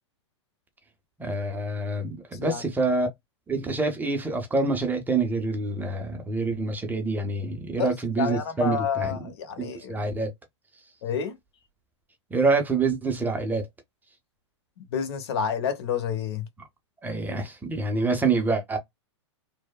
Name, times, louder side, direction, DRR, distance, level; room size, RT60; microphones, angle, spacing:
voice 1, 1.2-3.1 3.5-9.2 9.6-10.3 12.3-13.7 17.0-18.8, right 3 dB, 10° right, 0.5 m, -26 dB
voice 2, 7.8-10.0 11.0-11.3 14.8-16.4, left 7 dB, 60° left, 0.9 m, -29 dB
3.1 x 2.0 x 2.2 m
hypercardioid pair, 115°, 16 cm